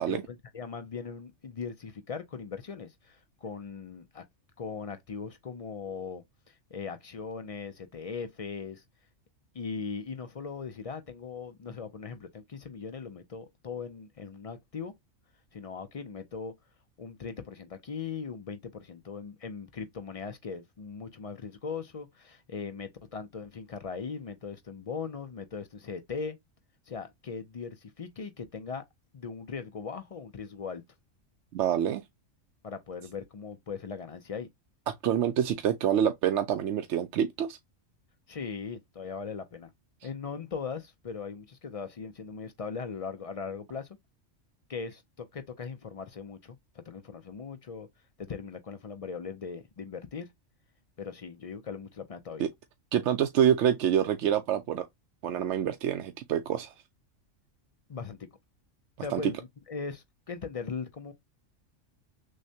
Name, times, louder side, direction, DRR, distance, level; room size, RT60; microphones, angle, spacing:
voice 1, 0.0-4.2 4.6-8.8 9.5-14.9 15.5-16.6 17.0-26.4 26.9-28.8 29.1-30.8 32.6-34.5 38.3-39.7 40.0-43.9 44.7-47.9 48.2-50.3 51.0-52.5 57.9-58.2 59.0-59.4 59.7-61.1, left 5 dB, 50° left, 0.4 m, -39 dB
voice 2, 31.5-32.0 35.0-37.6 52.4-52.5 52.9-54.9 55.2-56.7 59.1-59.3, right 9 dB, 70° right, 0.8 m, -26 dB
6.3 x 2.2 x 2.7 m
omnidirectional pair, 1.3 m